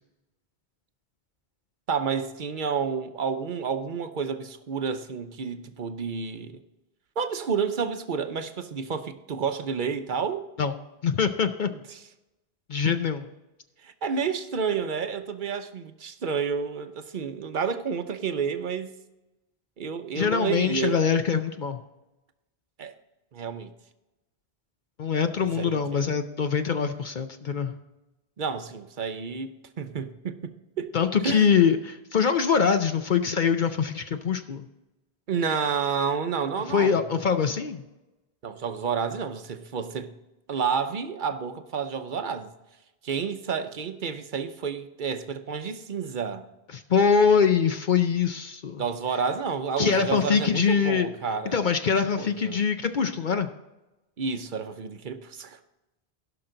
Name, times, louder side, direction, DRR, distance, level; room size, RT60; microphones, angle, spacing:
voice 1, 1.9-6.6 7.2-10.5 11.9-12.0 13.8-19.0 19.8-21.0 22.8-22.9 23.3-23.7 25.4-26.1 28.4-30.9 31.2-31.5 35.3-37.0 38.4-40.1 40.5-42.5 43.0-46.5 48.8-51.6 52.2-52.6 54.2-55.6, right 6 dB, 55° right, 0.9 m, -30 dB
voice 2, 11.0-11.7 12.7-13.2 20.1-21.8 25.0-27.7 30.9-34.7 36.7-37.8 46.7-48.8 49.8-51.1 51.5-53.5, left 6 dB, 55° left, 0.7 m, -23 dB
16.0 x 5.9 x 3.8 m
omnidirectional pair, 1.1 m